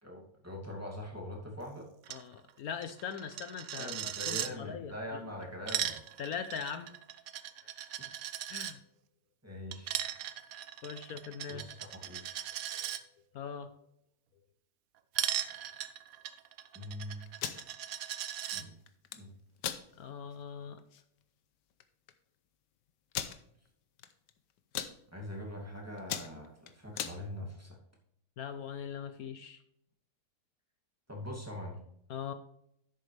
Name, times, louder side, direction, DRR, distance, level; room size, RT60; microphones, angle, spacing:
voice 1, 0.0-1.9 3.7-5.9 8.1-8.3 9.4-10.1 11.5-12.2 16.7-17.2 18.5-18.7 19.1-19.3 25.1-27.8 31.1-31.8, left 1 dB, 10° right, -2 dB, 2.3 m, -43 dB
Coin (dropping), 2.0-2.2 2.5-2.6 2.8-4.5 5.4-8.7 9.7-13.0 15.1-18.6, right 11 dB, 65° right, 1.0 m, -38 dB
voice 2, 2.1-5.2 6.2-6.9 8.5-8.8 10.8-11.7 12.8-13.0 13.3-13.7 20.0-20.8 28.4-29.6 32.1-32.3, left 7 dB, 65° left, 10 dB, 1.1 m, -41 dB
sound 1, 17.3-17.6 18.9-19.2 19.6-19.8 20.3-20.4 20.8-21.0 21.8-21.9 22.1-22.2 23.1-23.4 24.0-24.3 24.6-24.9 25.5-25.7 26.0-27.2, left 10 dB, 85° left, 1.4 m, -37 dB
10.5 x 8.5 x 3.3 m, 0.74 s
omnidirectional pair, 1.8 m